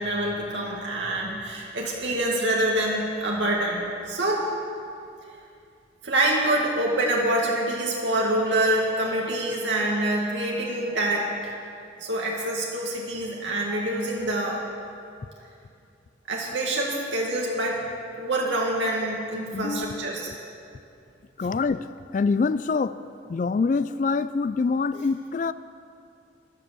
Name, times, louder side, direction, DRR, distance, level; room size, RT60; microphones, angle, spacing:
voice 1, 0.0-4.5 6.0-11.5 12.0-14.6 16.3-17.8 18.2-20.3, right 1 dB, 80° right, -3 dB, 2.0 m, -26 dB
voice 2, 19.5-20.3 21.4-21.9 22.1-23.0 23.3-25.5, left 4 dB, 45° left, 14 dB, 0.3 m, -25 dB
14.0 x 11.0 x 6.9 m, 2.5 s
head